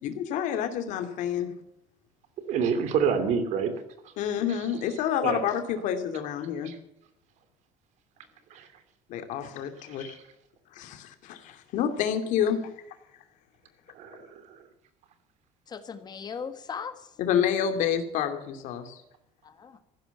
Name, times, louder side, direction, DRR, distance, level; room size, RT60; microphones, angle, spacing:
voice 1, 0.0-1.5 4.2-6.7 9.1-10.2 10.7-12.7 17.2-19.0, left 8 dB, 65° left, 8 dB, 2.5 m, -28 dB
voice 2, 2.5-3.7 4.0-4.1 5.2-5.4 6.6-6.8 8.5-8.7 9.9-10.2 13.9-14.6, right 6 dB, 60° right, 10 dB, 2.8 m, -28 dB
voice 3, 15.7-17.2 19.4-19.8, left 6 dB, 30° left, 10 dB, 1.5 m, -38 dB
15.0 x 11.5 x 7.0 m, 0.83 s
cardioid pair, 135°, 14 cm